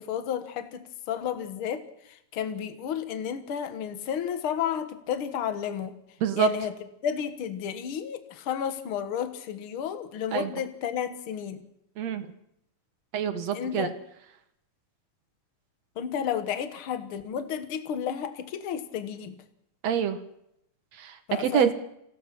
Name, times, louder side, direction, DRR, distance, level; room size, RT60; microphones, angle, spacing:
voice 1, 0.0-1.8 2.1-5.9 6.4-6.7 7.0-11.6 13.5-13.9 16.0-19.4 21.3-21.7, left 8 dB, 50° left, 9 dB, 1.9 m, -32 dB
voice 2, 12.0-12.3 13.1-14.0 19.8-20.2 21.0-21.7, right 8 dB, 60° right, 9 dB, 2.2 m, -26 dB
27.0 x 17.0 x 6.0 m, 0.77 s
omnidirectional pair, 3.7 m